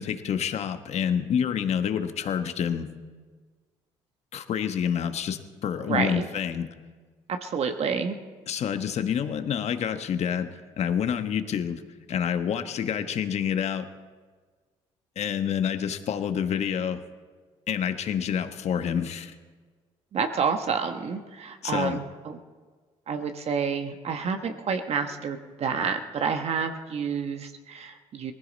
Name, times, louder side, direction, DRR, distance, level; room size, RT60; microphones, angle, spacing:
voice 1, 0.0-2.9 4.3-6.7 8.5-10.5 10.8-11.8 12.1-13.9 15.2-17.0 17.7-19.3 21.6-22.0, left 8 dB, 55° left, 9 dB, 1.2 m, -28 dB
voice 2, 5.8-6.3 7.3-8.2 20.1-22.4 23.1-28.3, right 6 dB, 50° right, 6 dB, 1.2 m, -29 dB
19.0 x 15.5 x 4.1 m, 1.5 s
supercardioid pair, 70°, 13 cm